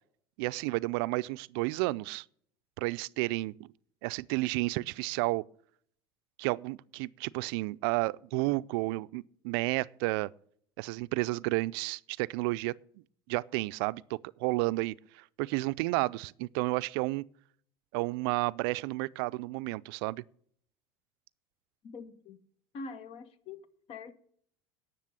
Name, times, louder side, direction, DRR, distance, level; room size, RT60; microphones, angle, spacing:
voice 1, 0.4-2.2 2.8-3.7 4.0-5.4 6.4-10.3 10.8-12.7 13.3-17.2 17.9-20.2, right 22 dB, 70° right, 0.4 m, -31 dB
voice 2, 21.8-22.4 22.7-23.6 23.9-24.1, left 4 dB, 50° left, 1.3 m, -44 dB
10.5 x 6.8 x 9.4 m
hypercardioid pair, 85°, 13 cm